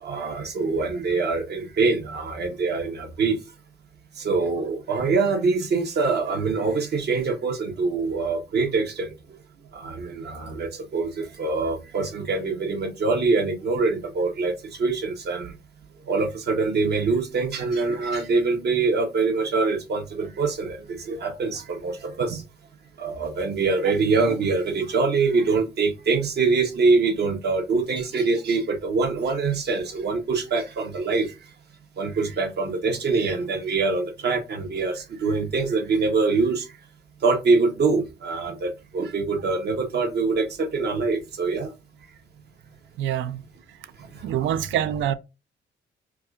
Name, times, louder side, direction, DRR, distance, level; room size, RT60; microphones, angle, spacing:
voice 1, 0.0-3.4 4.2-9.1 9.7-14.5 14.8-15.5 16.1-22.4 23.0-31.3 32.0-36.7 37.2-41.7 44.5-44.6, right 4 dB, 55° right, 1.1 m, -24 dB
voice 2, 43.0-43.4 44.2-45.1, right 10 dB, 75° right, 0.5 m, -25 dB
4.7 x 2.5 x 2.4 m
cardioid pair, 90°, 20 cm